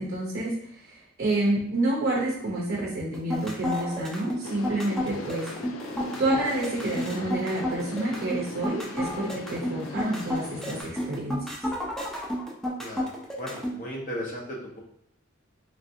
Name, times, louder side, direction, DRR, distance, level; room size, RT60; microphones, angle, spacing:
voice 1, 0.0-5.5 6.2-11.4, right 2 dB, 50° right, -3 dB, 0.5 m, -29 dB
sound 1, 3.1-13.7, left 1 dB, ahead, 0.4 m, -31 dB
sound 2, 4.4-10.8, left 3 dB, 70° left, 0.3 m, -40 dB
voice 2, 12.8-13.1 13.4-14.8, equal, 40° left, -2 dB, 0.7 m, -36 dB
3.2 x 2.5 x 2.6 m, 0.72 s
head